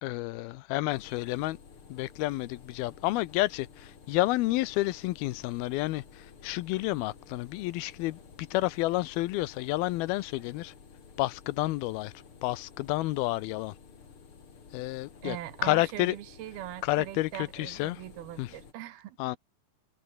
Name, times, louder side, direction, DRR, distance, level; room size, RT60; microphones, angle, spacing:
voice 1, 0.0-1.6 1.9-10.7 11.2-12.1 12.4-13.7 14.7-15.4 15.6-16.2 16.8-18.0 18.4-18.5 19.2-19.4, left 18 dB, 85° left, 2.7 m, -30 dB
sound 1, 0.9-18.7, left 5 dB, 40° left, 3.3 m, -53 dB
voice 2, 15.2-19.2, right 14 dB, 85° right, 3.2 m, -41 dB
omnidirectional pair, 4.3 m